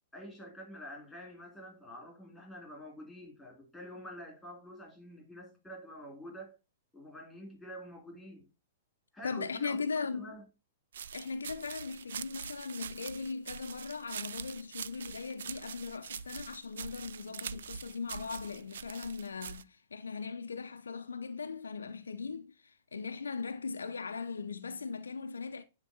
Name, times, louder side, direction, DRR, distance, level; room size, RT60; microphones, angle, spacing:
voice 1, 0.1-6.6 6.9-8.5 9.1-9.8 10.1-10.4, equal, 5° left, 2.8 m, -47 dB
voice 2, 9.2-10.3 11.1-25.6, left 5 dB, 70° left, 0.6 m, -39 dB
sound 1, 10.9-19.6, right 8 dB, 60° right, 0.3 m, -44 dB
10.0 x 3.4 x 2.9 m
figure-of-eight pair, 105°, 0 cm